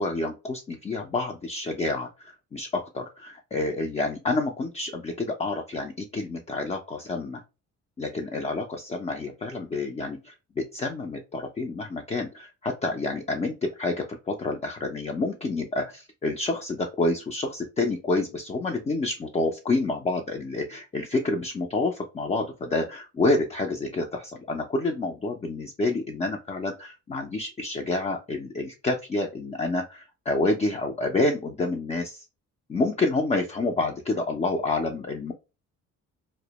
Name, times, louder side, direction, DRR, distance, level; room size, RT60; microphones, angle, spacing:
voice 1, 0.0-7.4 8.0-32.3 32.7-35.3, left 2 dB, 25° left, 2 dB, 0.4 m, -28 dB
2.1 x 2.1 x 2.8 m, 0.29 s
cardioid pair, 90°, 30 cm